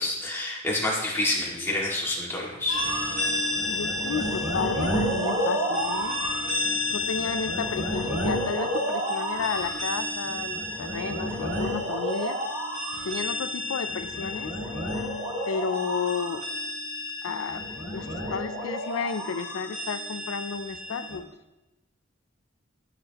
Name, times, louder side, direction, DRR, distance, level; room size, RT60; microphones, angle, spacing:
voice 1, 0.0-2.8, left 2 dB, 10° left, -4 dB, 2.0 m, -28 dB
sound 1, 2.7-21.2, left 1 dB, 35° right, 3.3 m, -30 dB
voice 2, 3.7-6.2 6.9-12.4 13.0-14.5 15.5-16.5 17.2-17.6 17.9-21.3, left 5 dB, 90° left, 10 dB, 0.5 m, -32 dB
13.5 x 6.7 x 2.9 m, 1.0 s
head